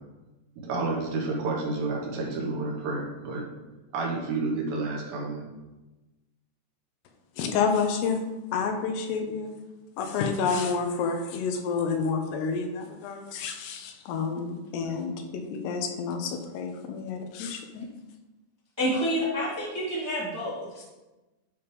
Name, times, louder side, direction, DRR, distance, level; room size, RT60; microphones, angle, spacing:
voice 1, 0.6-3.4 3.9-5.4, right 3 dB, 70° right, -2 dB, 3.1 m, -30 dB
voice 2, 7.4-8.2 8.5-9.5 10.0-17.9, left 5 dB, 85° left, 5 dB, 3.0 m, -29 dB
voice 3, 18.8-20.8, equal, 15° right, -6 dB, 0.8 m, -28 dB
11.5 x 5.1 x 3.5 m, 1.1 s
omnidirectional pair, 4.8 m